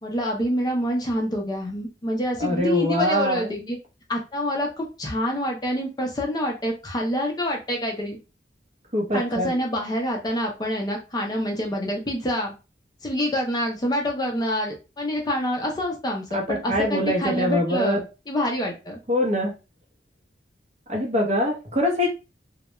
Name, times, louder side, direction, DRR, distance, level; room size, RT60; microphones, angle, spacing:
voice 1, 0.0-3.8 4.1-8.2 9.1-12.5 13.0-19.0, equal, 20° left, 0 dB, 0.5 m, -26 dB
voice 2, 2.4-3.6 8.9-9.5 16.3-18.0 19.1-19.5 20.9-22.1, equal, 40° right, 0 dB, 0.7 m, -23 dB
2.2 x 2.1 x 2.9 m, 0.29 s
head